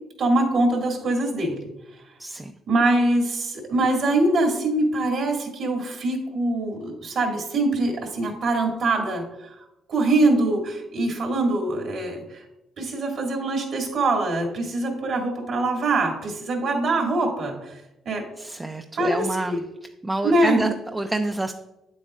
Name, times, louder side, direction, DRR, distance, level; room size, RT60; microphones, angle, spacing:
voice 1, 0.2-1.6 2.7-9.6 9.9-12.4 12.8-17.7 18.1-18.2 19.0-19.6 20.2-20.6, right 2 dB, 65° right, 1 dB, 2.2 m, -23 dB
voice 2, 2.2-2.5 18.4-19.6 20.0-21.5, right 2 dB, 15° right, 5 dB, 0.4 m, -27 dB
8.8 x 7.8 x 2.5 m, 0.94 s
cardioid pair, 90°, 0 cm